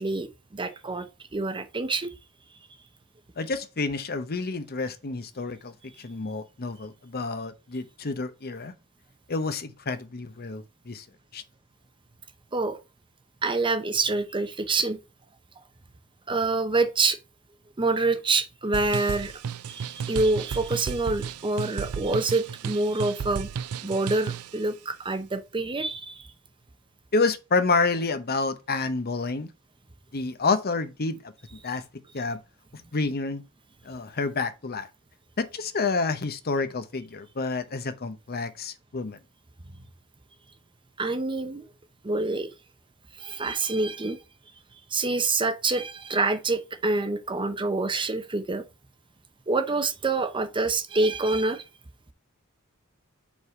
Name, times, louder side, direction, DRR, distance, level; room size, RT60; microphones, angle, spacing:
voice 1, 0.0-2.1 12.5-12.8 13.4-15.0 16.3-17.2 17.8-19.3 19.7-23.5 23.8-26.3 41.0-41.7 42.0-42.5 43.2-44.2 44.9-48.6 49.5-51.6, right 3 dB, 20° right, 0.7 m, -26 dB
voice 2, 3.4-8.7 9.3-11.1 11.3-11.4 27.1-29.5 30.1-31.2 31.5-31.8 32.1-32.4 32.9-33.4 33.8-34.9 35.4-39.2, left 3 dB, 45° left, 0.8 m, -29 dB
sound 1, 18.7-24.6, right 7 dB, 80° right, 0.4 m, -34 dB
5.4 x 4.7 x 4.8 m
head